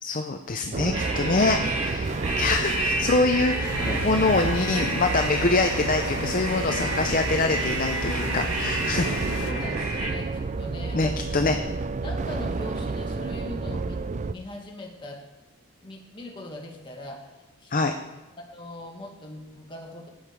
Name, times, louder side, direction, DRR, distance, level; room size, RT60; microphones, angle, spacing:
voice 1, 0.0-9.4 10.9-11.6 17.7-17.9, left 3 dB, 35° left, 6 dB, 0.6 m, -25 dB
sound 1, 0.7-14.3, right 3 dB, 35° right, 0.4 m, -30 dB
sound 2, 0.9-10.1, right 2 dB, 80° right, 4.8 m, -31 dB
voice 2, 2.0-2.4 9.4-10.3 10.6-11.6 12.0-14.0 14.3-15.2 15.8-18.0 18.4-20.1, left 1 dB, 20° left, 0 dB, 2.0 m, -40 dB
sound 3, 3.6-9.5, left 6 dB, 85° left, 0.5 m, -36 dB
16.0 x 8.8 x 4.8 m, 1.1 s
head